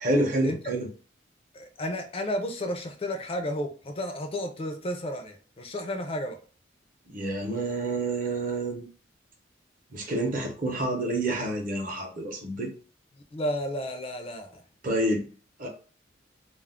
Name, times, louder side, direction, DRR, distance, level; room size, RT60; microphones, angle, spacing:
voice 1, 0.0-0.9 7.1-8.8 9.9-12.7 14.8-15.3 15.6-15.7, right 1 dB, 45° right, 1 dB, 0.7 m, -28 dB
voice 2, 1.5-6.4 13.3-14.6, equal, 30° left, 5 dB, 0.4 m, -32 dB
2.3 x 2.0 x 3.5 m, 0.39 s
head